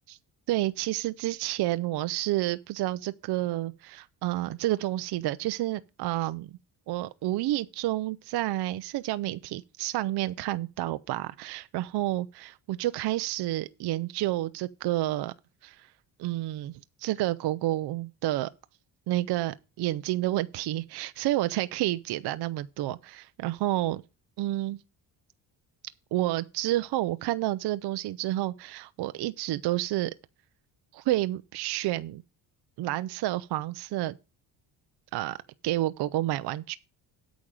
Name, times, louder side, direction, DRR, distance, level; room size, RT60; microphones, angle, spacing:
voice 1, 0.5-6.6 6.9-15.3 15.6-15.9 16.2-18.5 19.1-24.0 24.4-24.8 26.1-30.1 30.9-32.2 32.8-34.2 35.1-35.4 35.6-36.8, right 15 dB, 65° right, 0.6 m, -30 dB
8.7 x 5.1 x 7.5 m
cardioid pair, 125°, 44 cm